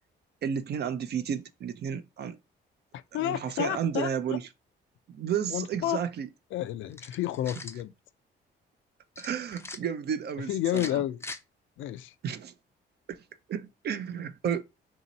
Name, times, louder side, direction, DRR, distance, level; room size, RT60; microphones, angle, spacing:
voice 1, 0.4-2.4 3.1-4.4 5.1-6.3 9.2-11.0 12.2-12.5 13.1-13.2 13.5-14.6, right 8 dB, 55° right, 0.5 m, -32 dB
voice 2, 2.9-4.4 5.5-6.0 6.5-7.9 10.5-11.2 11.8-12.1, left 13 dB, 75° left, 0.4 m, -31 dB
sound 1, 6.9-7.8 9.2-9.8 10.7-11.4, left 2 dB, 15° left, 0.4 m, -41 dB
3.0 x 2.8 x 4.0 m
cardioid pair, 90°, 20 cm